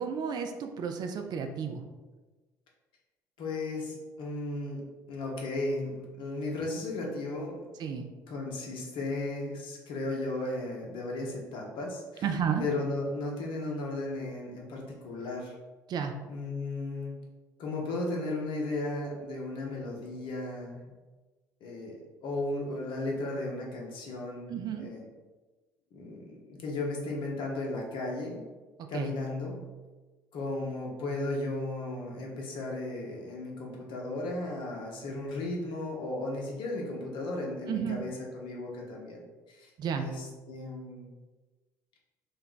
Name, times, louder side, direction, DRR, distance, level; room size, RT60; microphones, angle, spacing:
voice 1, 0.0-1.8 7.8-8.1 12.2-12.6 15.9-16.1 24.5-24.9 28.9-29.1 37.7-38.0 39.8-40.1, right 7 dB, 45° right, 6 dB, 0.4 m, -32 dB
voice 2, 3.4-4.8 5.1-7.7 8.3-12.3 12.6-15.5 16.3-17.2 17.6-20.8 21.6-25.0 25.9-28.4 28.9-29.6 30.3-39.2 39.5-39.7 40.0-41.1, left 2 dB, 60° left, -1 dB, 0.8 m, -35 dB
2.5 x 2.1 x 3.7 m, 1.2 s
hypercardioid pair, 55°, 10 cm